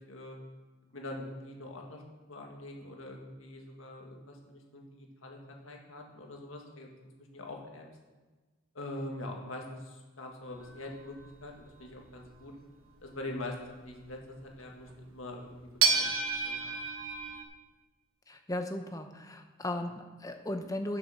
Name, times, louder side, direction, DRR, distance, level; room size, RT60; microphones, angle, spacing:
voice 1, 0.1-0.4 0.9-2.0 2.3-6.9 7.3-7.9 8.7-11.2 11.4-12.5 13.0-16.1 16.4-16.8, left 1 dB, 70° left, 1 dB, 1.7 m, -43 dB
sound 1, 10.6-12.2 14.9-15.0 15.8-17.4, right 5 dB, 70° right, 1.1 m, -30 dB
voice 2, 18.3-21.0, left 1 dB, 15° left, 6 dB, 0.7 m, -36 dB
7.7 x 6.9 x 6.6 m, 1.3 s
head